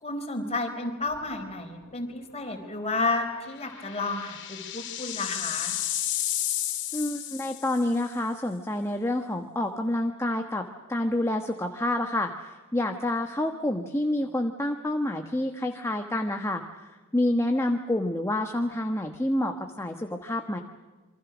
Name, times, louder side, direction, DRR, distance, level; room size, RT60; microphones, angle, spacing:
voice 1, 0.0-5.8, left 3 dB, 30° left, 4 dB, 4.4 m, -31 dB
sound 1, 1.1-1.5 1.8-1.9 3.3-8.0, left 12 dB, 55° left, 3.3 m, -32 dB
voice 2, 6.9-16.8 17.1-20.6, left 1 dB, 15° left, 3 dB, 1.3 m, -28 dB
28.0 x 24.5 x 6.2 m, 1.3 s
head